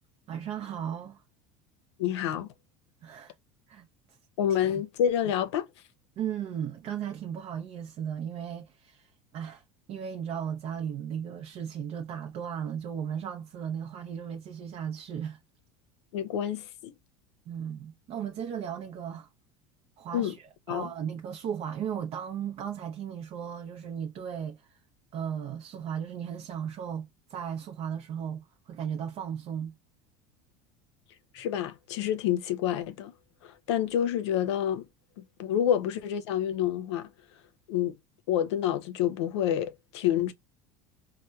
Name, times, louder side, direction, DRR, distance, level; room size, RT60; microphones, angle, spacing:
voice 1, 0.3-1.2 3.0-3.3 3.7-3.9 6.2-15.4 17.5-19.3 20.0-24.8 25.1-29.7, right 8 dB, 45° right, 0.5 m, -36 dB
voice 2, 2.0-2.5 4.4-5.7 16.1-16.9 20.1-20.3 20.7-20.9 31.3-33.1 33.4-34.9 35.2-37.1 37.7-37.9 38.3-40.3, left 10 dB, 90° left, 0.6 m, -28 dB
4.2 x 2.1 x 2.3 m
supercardioid pair, 115°, 14 cm